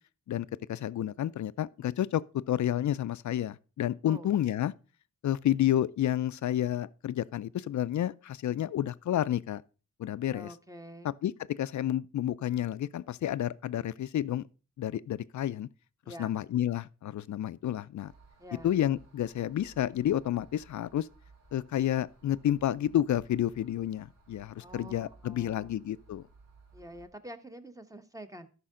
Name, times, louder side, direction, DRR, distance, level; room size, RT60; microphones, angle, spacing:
voice 1, 0.3-4.7 5.2-9.6 10.0-10.5 11.2-14.4 14.8-15.7 16.2-18.1 18.6-21.1 21.5-26.2, left 11 dB, 65° left, 0.4 m, -30 dB
voice 2, 10.2-11.1 16.0-16.3 18.4-18.7 24.6-25.7 26.7-28.5, right 1 dB, 10° right, 1.0 m, -47 dB
sound 1, 18.0-27.1, right 3 dB, 90° right, 3.4 m, -58 dB
12.5 x 5.6 x 3.7 m
cardioid pair, 65°, 32 cm